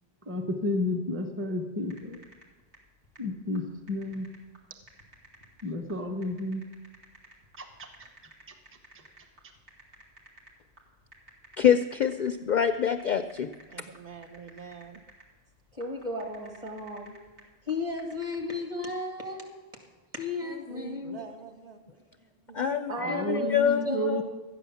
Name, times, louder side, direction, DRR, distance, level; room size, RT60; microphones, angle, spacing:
voice 1, 0.3-2.2 3.2-4.3 5.6-6.6 7.6-7.9 23.0-24.2, left 1 dB, 10° right, 4 dB, 0.9 m, -31 dB
sound 1, 1.8-18.5, right 1 dB, 85° right, 2.6 m, -56 dB
voice 2, 11.6-13.5 22.5-24.2, left 8 dB, 60° left, 9 dB, 0.5 m, -26 dB
voice 3, 13.7-15.0 20.4-21.9 22.5-22.9 23.2-23.3, right 5 dB, 55° right, 2 dB, 0.9 m, -45 dB
voice 4, 15.7-17.1 17.6-19.5 20.1-21.3 22.9-23.5 23.8-24.1, left 2 dB, 30° right, 2 dB, 2.3 m, -34 dB
13.0 x 9.4 x 7.0 m, 1.2 s
omnidirectional pair, 1.1 m